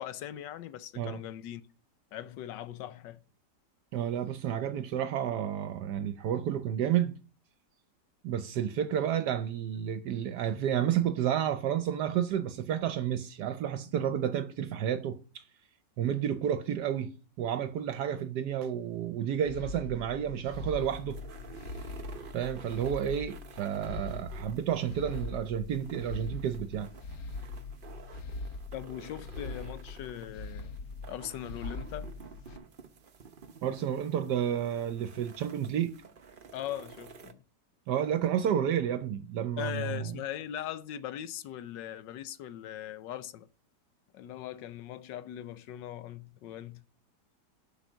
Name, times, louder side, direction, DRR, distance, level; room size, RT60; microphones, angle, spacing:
voice 1, 0.0-1.6 2.1-3.2 28.7-30.7 31.1-32.1 36.5-37.4 39.6-43.5 44.1-46.9, left 11 dB, 85° left, 1.4 m, -40 dB
voice 2, 3.9-7.2 8.2-15.4 16.0-17.1 17.4-21.2 22.3-26.9 33.6-36.0 37.9-40.0, right 9 dB, 75° right, 1.2 m, -31 dB
sound 1, 19.4-32.6, left 3 dB, 60° left, 1.0 m, -42 dB
sound 2, 20.3-37.3, right 5 dB, 50° right, 0.7 m, -52 dB
7.9 x 5.7 x 6.1 m
omnidirectional pair, 1.9 m